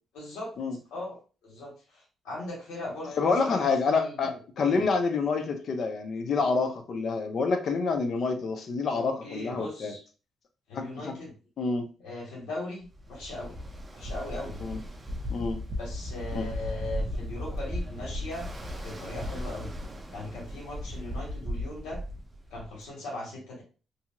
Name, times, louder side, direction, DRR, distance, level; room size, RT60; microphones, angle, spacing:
voice 1, 0.1-0.5 0.9-1.2 1.4-4.8 8.9-10.0 10.7-11.3 12.0-13.6 13.9-14.6 15.8-18.5 18.8-19.7 20.1-22.0 22.5-23.6, left 2 dB, 90° left, -3 dB, 1.4 m, -39 dB
voice 2, 3.2-9.9 10.7-10.9 11.6-11.8 14.6-14.8 15.3-15.6 16.3-16.5, left 4 dB, 55° left, 6 dB, 0.6 m, -27 dB
Ocean, 12.9-22.8, equal, 20° right, 0.6 m, -36 dB
2.8 x 2.7 x 2.5 m, 0.35 s
cardioid pair, 90°, 0 cm